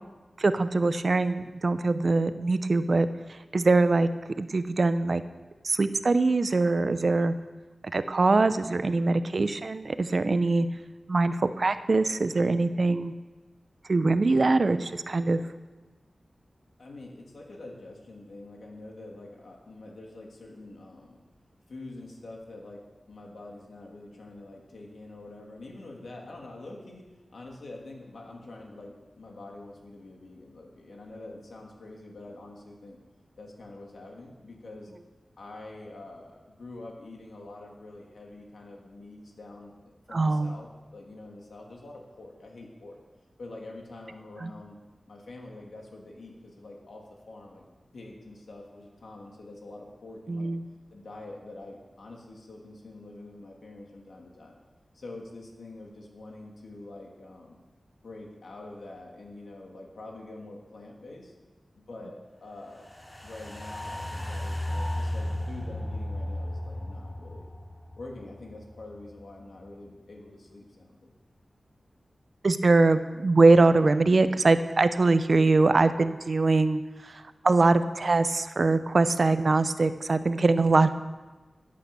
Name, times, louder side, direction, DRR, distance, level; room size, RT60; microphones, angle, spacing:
voice 1, 0.4-3.1 3.5-4.1 4.4-5.2 5.6-7.3 7.9-10.7 11.1-13.1 13.9-15.4 40.1-40.5 44.4-44.5 50.3-50.6 72.4-80.9, right 3 dB, 50° right, 11 dB, 0.7 m, -23 dB
voice 2, 16.8-21.2 21.7-22.8 23.1-27.1 27.3-33.0 33.4-34.9 35.4-39.7 40.1-43.0 43.4-44.8 45.1-47.7 47.9-50.5 50.9-54.6 54.9-57.6 58.0-61.3 61.7-62.9 63.2-67.5 67.9-71.1, left 2 dB, 80° left, 0 dB, 2.7 m, -45 dB
sound 1, 62.7-69.1 69.5-69.6, left 1 dB, 20° left, 3.0 m, -35 dB
14.0 x 8.5 x 6.9 m, 1.2 s
wide cardioid pair, 90°, 0 cm